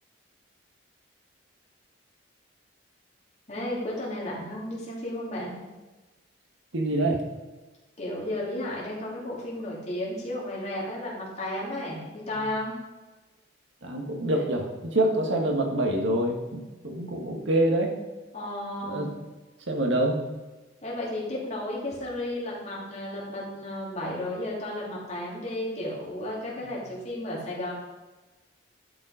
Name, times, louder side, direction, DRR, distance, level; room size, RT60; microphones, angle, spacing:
voice 1, 3.5-5.6 8.0-12.8 18.3-19.0 20.8-27.7, left 1 dB, 35° left, -5 dB, 2.9 m, -33 dB
voice 2, 6.7-7.2 12.3-12.5 13.8-18.0 18.8-19.1 19.7-20.2 26.5-26.7, right 1 dB, 70° right, 2 dB, 1.6 m, -26 dB
11.5 x 5.4 x 5.0 m, 1.2 s
head